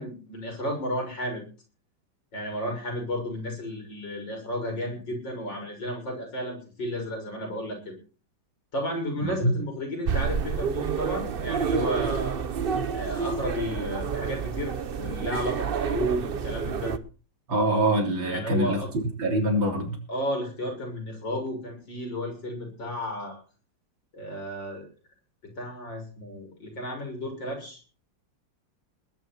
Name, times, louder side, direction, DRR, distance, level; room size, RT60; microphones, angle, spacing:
voice 1, 0.0-1.4 2.3-8.0 8.7-12.3 12.9-16.9 18.3-18.9 20.1-23.4 24.1-24.9 25.4-27.8, equal, 70° left, 2 dB, 7.4 m, -33 dB
sound 1, 10.0-17.0, right 6 dB, 45° right, 0.7 m, -29 dB
voice 2, 17.5-20.0, right 1 dB, 90° right, 2 dB, 4.2 m, -25 dB
20.0 x 11.0 x 4.5 m, 0.37 s
omnidirectional pair, 2.0 m